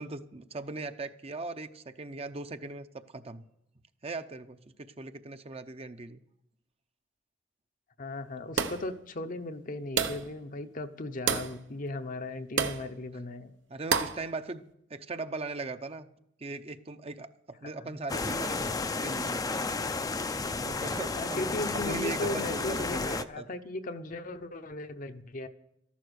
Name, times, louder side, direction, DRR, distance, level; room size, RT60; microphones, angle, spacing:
voice 1, 0.0-3.4 4.0-6.2 13.7-14.6 14.9-16.1 16.4-18.7 19.0-19.4 20.5-21.5 21.8-23.5, right 3 dB, 35° right, 9 dB, 0.7 m, -39 dB
voice 2, 8.0-13.5 17.8-18.0 21.1-25.5, left 2 dB, 45° left, 8 dB, 0.8 m, -37 dB
sound 1, 8.6-8.9 10.0-10.3 11.3-11.6 12.6-12.9 13.9-14.2, right 6 dB, 80° right, 0.9 m, -29 dB
sound 2, 18.1-23.2, left 3 dB, 20° left, 0.5 m, -32 dB
13.5 x 11.5 x 6.4 m, 0.80 s
head